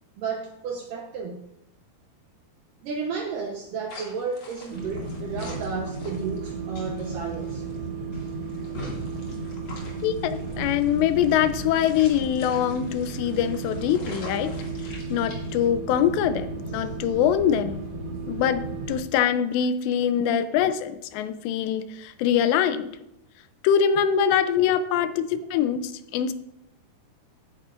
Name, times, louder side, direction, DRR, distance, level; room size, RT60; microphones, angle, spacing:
voice 1, 0.2-1.5 2.8-7.7 19.8-20.4 24.8-25.1, right 5 dB, 75° right, 2 dB, 2.0 m, -33 dB
sound 1, 3.9-15.7, left 2 dB, 40° left, 2.4 m, -44 dB
sound 2, 4.7-19.0, right 3 dB, 25° right, 2.8 m, -34 dB
voice 2, 10.0-14.5 15.1-17.8 18.3-22.9 23.6-26.3, left 9 dB, 85° left, 12 dB, 2.8 m, -23 dB
16.0 x 9.4 x 2.5 m, 0.83 s
omnidirectional pair, 5.0 m